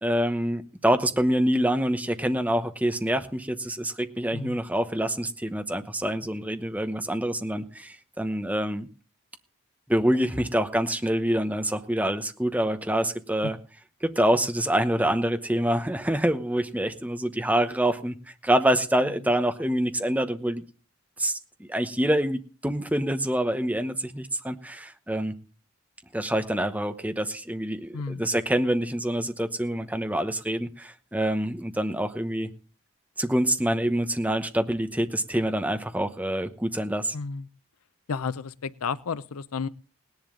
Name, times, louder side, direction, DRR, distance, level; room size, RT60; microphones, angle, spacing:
voice 1, 0.0-8.9 9.9-13.6 14.0-18.2 18.4-20.6 21.2-25.3 26.1-32.5 33.2-37.1, right 1 dB, 5° right, 8 dB, 0.9 m, -26 dB
voice 2, 27.9-28.3 37.1-37.5 38.1-39.7, left 5 dB, 90° left, 16 dB, 0.6 m, -32 dB
18.5 x 10.5 x 3.8 m, 0.36 s
head